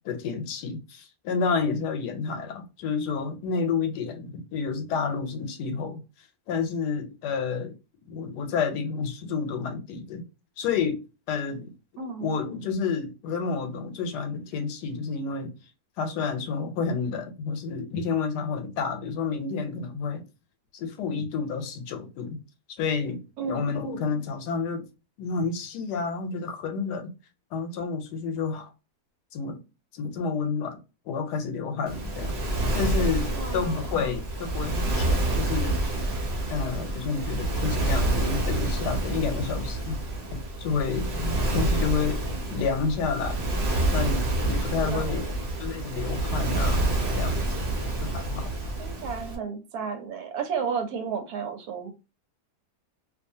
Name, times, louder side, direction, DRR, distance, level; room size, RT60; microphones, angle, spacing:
voice 1, 0.0-6.0 6.5-7.8 8.1-10.2 10.6-11.0 11.3-11.7 12.2-15.5 16.0-20.2 20.7-22.4 22.8-24.9 25.2-27.1 27.5-28.7 29.3-29.6 29.9-30.8 31.1-32.4 32.7-35.8 36.5-40.0 40.3-43.4 43.9-45.3 45.6-46.9 47.2-47.4 48.0-48.5, left 5 dB, 85° left, 1.2 m, -30 dB
voice 2, 12.0-12.4 23.4-23.8 33.3-34.1 44.8-45.4 48.8-51.9, right 6 dB, 75° right, 1.1 m, -33 dB
Waves surf, 31.9-49.4, right 1 dB, 50° right, 0.8 m, -28 dB
2.6 x 2.4 x 2.6 m
omnidirectional pair, 1.7 m